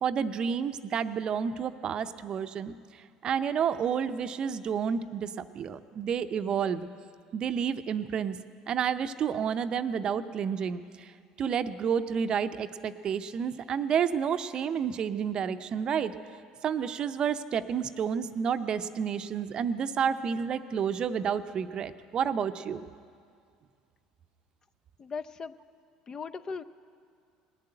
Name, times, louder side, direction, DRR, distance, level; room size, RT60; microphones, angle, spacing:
voice 1, 0.0-6.9 7.3-8.4 8.7-11.1 11.4-16.1 16.6-22.8, right 7 dB, 45° right, 11 dB, 0.6 m, -30 dB
voice 2, 25.0-25.5 26.1-26.6, left 5 dB, 35° left, 12 dB, 0.5 m, -37 dB
19.0 x 7.5 x 8.9 m, 2.2 s
hypercardioid pair, 80°, 2 cm